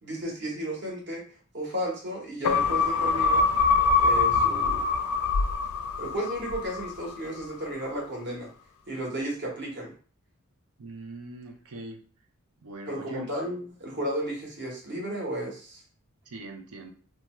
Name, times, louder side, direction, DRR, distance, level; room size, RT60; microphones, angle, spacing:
voice 1, 0.0-1.2 1.5-3.5 4.0-4.9 6.0-8.5 8.9-9.9 12.9-15.8, equal, 55° right, -1 dB, 1.0 m, -33 dB
sound 1, 2.4-7.1 7.5-7.6, left 4 dB, 75° left, 0.3 m, -24 dB
voice 2, 10.8-12.0 12.6-13.3 16.3-16.9, right 2 dB, 75° right, 4 dB, 0.6 m, -41 dB
2.6 x 2.2 x 3.0 m, 0.42 s
head